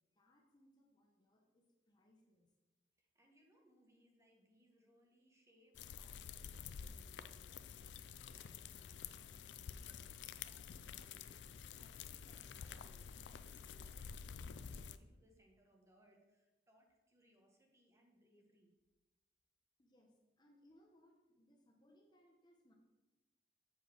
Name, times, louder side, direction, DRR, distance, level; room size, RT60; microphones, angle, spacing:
voice 1, 0.1-2.5 19.8-22.7, equal, 25° left, 1 dB, 0.9 m, -70 dB
voice 2, 3.0-18.7, equal, 15° right, 0 dB, 1.2 m, -71 dB
sound 1, 5.7-15.0, left 7 dB, 85° left, 0.4 m, -50 dB
7.3 x 4.1 x 6.1 m, 1.1 s
head